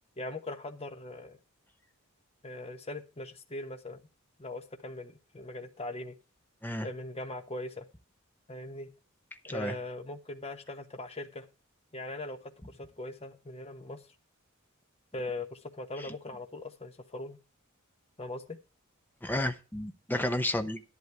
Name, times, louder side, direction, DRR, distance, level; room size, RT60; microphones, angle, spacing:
voice 1, 0.2-1.4 2.4-4.0 4.4-6.2 6.8-7.9 8.5-8.9 9.4-11.5 11.9-14.0 15.1-17.4 18.2-18.6, left 2 dB, 30° left, 1.1 m, -40 dB
voice 2, 19.2-20.8, left 1 dB, 10° left, 0.7 m, -32 dB
11.5 x 11.0 x 3.4 m
head